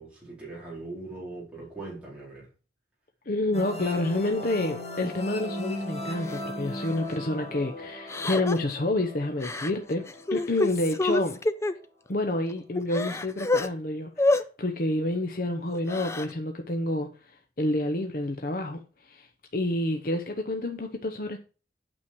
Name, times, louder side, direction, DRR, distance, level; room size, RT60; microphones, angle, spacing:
voice 1, 0.0-2.5, right 2 dB, 5° right, 4.1 m, -40 dB
voice 2, 3.3-11.4 12.1-19.3 19.5-21.4, left 1 dB, 55° left, 0.8 m, -29 dB
sound 1, 3.5-11.0, left 1 dB, 35° left, 3.0 m, -38 dB
Crying sobbing, 6.3-6.4 6.9-7.1 8.1-8.7 9.4-9.7 10.1-11.7 12.3-12.4 12.8-13.7 14.2-14.4 15.7-16.3, left 2 dB, 15° left, 0.5 m, -27 dB
8.8 x 6.3 x 4.6 m
head